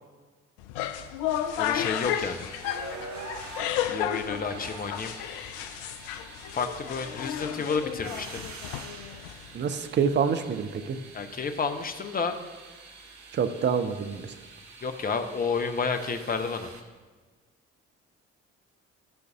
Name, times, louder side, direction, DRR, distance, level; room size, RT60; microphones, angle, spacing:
sound 1, 0.6-9.6, left 10 dB, 65° left, 0.5 m, -33 dB
sound 2, 1.3-16.8, right 4 dB, 50° right, 1.0 m, -46 dB
voice 1, 1.6-2.5 3.9-5.1 6.5-8.4 11.1-12.4 14.8-16.7, left 5 dB, 25° left, 7 dB, 0.7 m, -30 dB
voice 2, 9.5-11.0 13.3-14.2, right 6 dB, 30° right, 10 dB, 0.6 m, -26 dB
9.1 x 4.0 x 6.6 m, 1.4 s
figure-of-eight pair, 40°, 38 cm